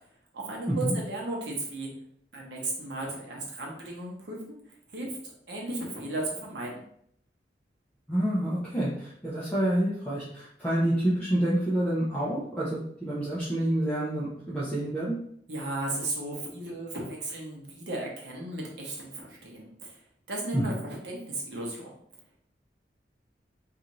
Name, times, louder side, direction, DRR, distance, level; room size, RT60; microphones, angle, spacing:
voice 1, 0.3-1.9 2.3-4.6 4.9-5.1 5.5-6.8 15.5-19.9 20.3-21.9, right 2 dB, 75° right, -2 dB, 0.8 m, -35 dB
voice 2, 8.1-15.1 20.5-20.7, right 1 dB, 5° left, -9 dB, 0.5 m, -28 dB
2.6 x 2.4 x 2.9 m, 0.67 s
head